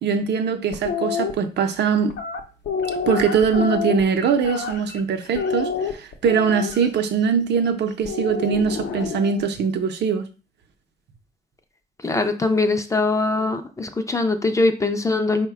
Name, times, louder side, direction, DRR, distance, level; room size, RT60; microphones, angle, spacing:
voice 1, 0.0-2.2 3.1-10.3, right 6 dB, 75° right, 0.6 m, -22 dB
sound 1, 0.7-1.3 2.1-5.0 5.3-6.9 8.0-9.4, left 6 dB, 80° left, 0.6 m, -28 dB
voice 2, 12.0-15.5, left 3 dB, 15° left, 0.3 m, -22 dB
4.7 x 2.1 x 4.7 m
wide cardioid pair, 160°, 18 cm